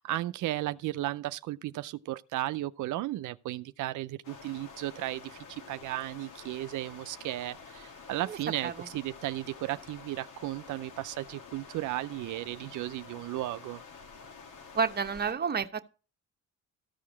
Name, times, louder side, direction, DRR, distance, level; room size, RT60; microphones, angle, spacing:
voice 1, 0.0-13.8, right 16 dB, 80° right, 0.5 m, -35 dB
sound 1, 4.2-15.3, left 5 dB, 80° left, 2.3 m, -49 dB
voice 2, 8.3-8.9 14.7-15.9, right 6 dB, 30° right, 0.9 m, -31 dB
14.0 x 4.8 x 7.1 m
cardioid pair, 90°, 30 cm